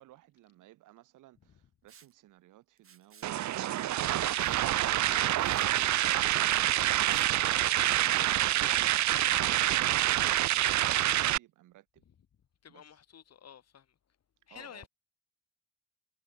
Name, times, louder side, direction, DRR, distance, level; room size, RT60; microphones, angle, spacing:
voice 1, 0.0-6.9 7.5-12.0 12.7-12.8 14.5-14.9, right 15 dB, 90° right, 5.9 m, -59 dB
Liquid, 1.9-2.1 2.8-3.3 4.4-4.6 5.0-5.1 5.4-5.7 7.0-7.3, right 7 dB, 45° right, 4.4 m, -57 dB
sound 1, 3.2-11.4, right 13 dB, 70° right, 0.9 m, -27 dB
voice 2, 12.6-14.0 14.5-14.9, left 8 dB, 55° left, 5.5 m, -50 dB
cardioid pair, 90°, 30 cm